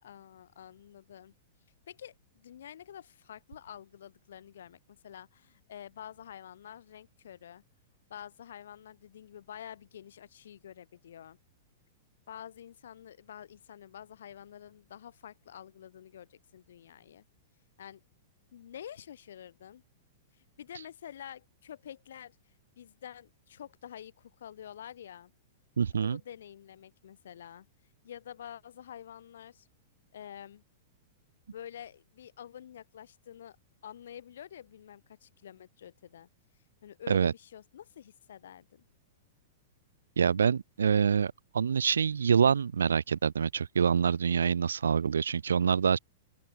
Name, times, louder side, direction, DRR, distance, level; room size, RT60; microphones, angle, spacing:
voice 1, 0.0-1.3 1.9-7.6 8.1-11.4 12.3-17.2 17.8-18.0 18.5-19.8 20.3-22.4 22.8-25.3 26.0-27.7 28.0-29.7 30.1-30.6 31.5-33.6 33.8-36.3 36.8-38.8, left 10 dB, 65° left, 4.1 m, -48 dB
voice 2, 25.8-26.2 37.1-37.3 40.2-46.0, right 7 dB, 70° right, 0.4 m, -26 dB
open air
figure-of-eight pair, 100°, 0 cm